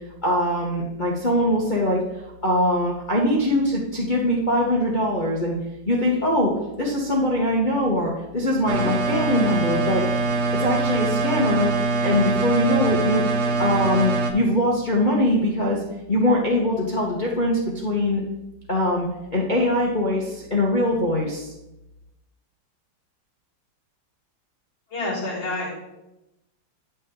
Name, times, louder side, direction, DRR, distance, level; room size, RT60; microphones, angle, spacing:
voice 1, 0.2-2.0 2.4-5.6 5.9-6.5 6.8-10.0 10.5-11.7 12.0-13.2 13.6-15.8 16.1-18.2 18.7-21.5, left 1 dB, 35° left, -4 dB, 0.7 m, -22 dB
sound 1, 8.7-14.3, right 3 dB, 60° right, 1.1 m, -23 dB
voice 2, 24.9-25.7, left 2 dB, 60° left, -6 dB, 3.6 m, -28 dB
9.4 x 5.9 x 3.6 m, 0.93 s
omnidirectional pair, 2.3 m